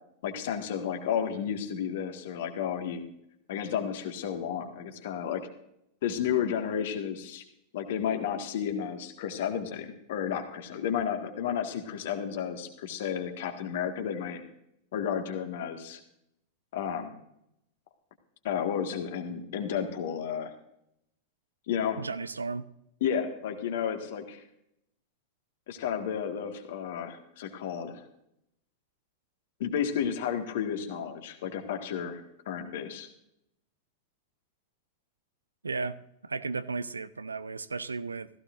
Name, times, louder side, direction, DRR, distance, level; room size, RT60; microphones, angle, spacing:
voice 1, 0.2-3.0 3.5-5.4 6.0-7.4 7.7-14.4 14.9-16.0 16.7-17.1 18.4-20.5 21.7-22.0 23.0-24.4 25.7-28.0 29.6-33.1, left 8 dB, 55° left, 5 dB, 1.8 m, -32 dB
voice 2, 22.0-22.7 35.6-38.3, right 4 dB, 75° right, 15 dB, 0.5 m, -35 dB
16.0 x 15.0 x 2.6 m, 0.78 s
figure-of-eight pair, 90°, 0 cm